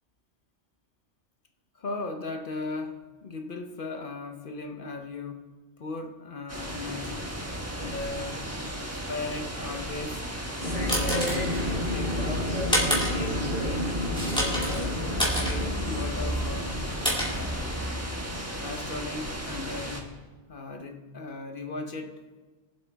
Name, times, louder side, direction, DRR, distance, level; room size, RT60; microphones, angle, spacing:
voice 1, 1.7-5.5 5.8-7.3 7.7-8.4 9.1-10.3 10.7-12.5 12.9-15.1 15.5-16.8 17.2-17.6 18.6-20.1 20.5-22.3, left 3 dB, 50° left, 5 dB, 0.9 m, -37 dB
sound 1, 6.5-20.0, equal, 15° right, 1.3 m, -36 dB
sound 2, 10.4-18.1, equal, 5° left, 2.7 m, -30 dB
sound 3, 10.6-18.4, left 1 dB, 40° right, 3.0 m, -32 dB
22.0 x 7.9 x 3.5 m, 1.3 s
omnidirectional pair, 1.2 m